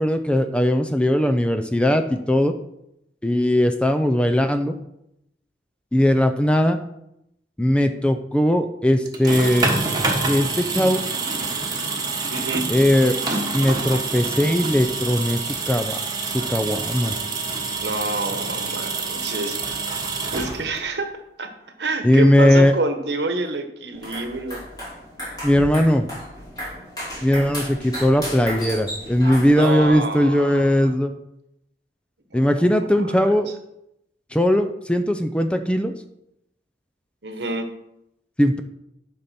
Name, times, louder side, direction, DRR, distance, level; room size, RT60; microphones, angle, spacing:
voice 1, 0.0-2.5 3.2-4.7 5.9-6.8 7.6-9.7 10.2-11.0 12.7-13.2 13.5-15.4 15.7-16.0 16.3-17.1 22.0-22.7 25.4-26.1 27.2-31.1 32.3-33.5 34.3-35.9 38.4-38.6, equal, 5° left, 7 dB, 0.5 m, -19 dB
sound 1, 9.1-21.0, right 3 dB, 25° right, 1.3 m, -27 dB
voice 2, 12.3-12.7 17.8-19.9 20.3-21.1 21.4-21.5 21.8-24.6 29.5-30.9 32.3-32.6 33.0-33.3 37.2-37.7, right 2 dB, 70° right, 7 dB, 1.1 m, -28 dB
sound 2, 23.9-29.9, equal, 25° left, 4.0 m, -34 dB
11.0 x 5.4 x 4.3 m, 0.81 s
head